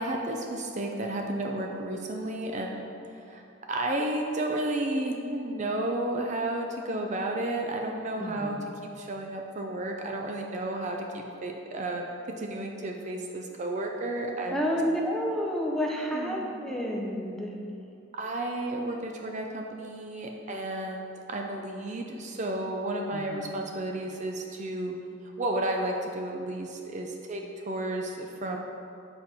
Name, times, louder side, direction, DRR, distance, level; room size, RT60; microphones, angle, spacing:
voice 1, 0.0-2.8 3.3-3.4 3.7-8.6 9.0-14.6 16.1-16.5 18.1-24.9 25.4-28.6, right 1 dB, 40° right, 2 dB, 0.5 m, -32 dB
voice 2, 8.2-8.8 14.5-17.5 23.1-23.6, equal, ahead, -2 dB, 0.7 m, -30 dB
7.3 x 4.4 x 4.3 m, 2.6 s
head